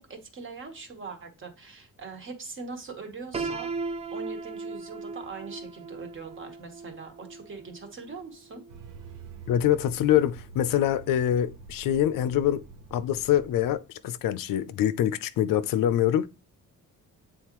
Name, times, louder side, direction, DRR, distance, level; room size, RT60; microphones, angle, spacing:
voice 1, 0.0-3.7 4.1-8.6, right 4 dB, 35° right, 1.3 m, -41 dB
Piano, 3.3-9.2, right 4 dB, 20° right, 0.4 m, -37 dB
sound 1, 8.7-13.8, right 5 dB, 75° right, 0.9 m, -46 dB
voice 2, 9.5-12.6 12.9-16.3, left 11 dB, 85° left, 0.6 m, -25 dB
8.4 x 3.9 x 3.0 m
wide cardioid pair, 165°, 33 cm